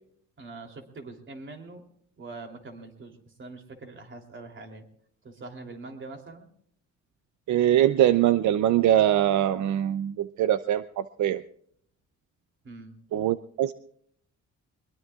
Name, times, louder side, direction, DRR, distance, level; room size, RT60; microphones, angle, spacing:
voice 1, 0.4-1.8 2.2-4.8 5.2-6.5 12.6-12.9, right 3 dB, 40° right, 3 dB, 3.2 m, -43 dB
voice 2, 7.5-11.4 13.1-13.7, right 12 dB, 75° right, 13 dB, 0.6 m, -23 dB
22.0 x 21.5 x 2.4 m, 0.65 s
cardioid pair, 115°, 30 cm